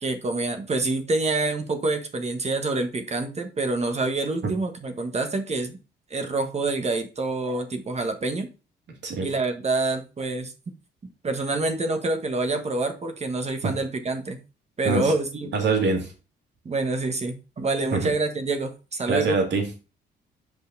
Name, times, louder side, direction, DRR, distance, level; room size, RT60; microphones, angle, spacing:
voice 1, 0.0-5.8 6.1-8.5 9.2-10.5 11.2-14.4 14.8-15.6 16.6-19.4, right 2 dB, 35° right, 6 dB, 1.5 m, -27 dB
voice 2, 15.5-16.1 17.9-18.1 19.1-19.8, right 3 dB, 60° right, 2 dB, 2.5 m, -24 dB
6.6 x 5.2 x 4.0 m, 0.31 s
cardioid pair, 90°, 20 cm